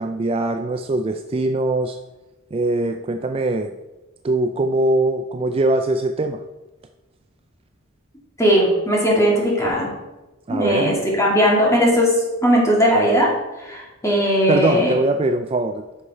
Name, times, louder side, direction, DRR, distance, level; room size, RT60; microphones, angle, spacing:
voice 1, 0.0-2.0 2.5-3.7 4.2-6.4 10.5-11.0 14.5-15.8, right 2 dB, 30° right, 7 dB, 0.4 m, -22 dB
voice 2, 8.4-9.9 10.5-12.1 12.4-13.3 13.6-14.9, equal, 15° left, -3 dB, 2.4 m, -18 dB
9.9 x 6.4 x 4.3 m, 1.1 s
head